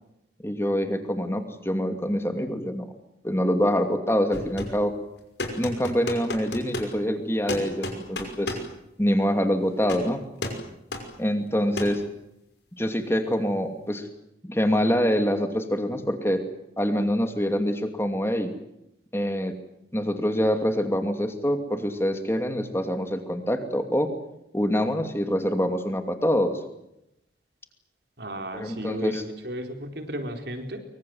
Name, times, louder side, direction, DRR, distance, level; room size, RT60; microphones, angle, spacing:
voice 1, 0.4-2.9 3.2-4.9 5.6-8.6 9.0-10.2 11.2-12.0 12.8-14.1 14.4-16.4 16.8-18.5 19.1-19.5 19.9-24.1 24.5-26.6 28.5-29.2, equal, 15° left, 6 dB, 2.6 m, -25 dB
sound 1, 4.3-4.8 5.4-6.9 7.5-8.7 9.8-10.1 10.4-10.7 10.9-11.1 11.8-12.0, left 2 dB, 80° left, 5.7 m, -32 dB
voice 2, 28.2-30.8, right 1 dB, 65° right, 5 dB, 4.2 m, -34 dB
24.5 x 24.0 x 7.9 m, 0.87 s
head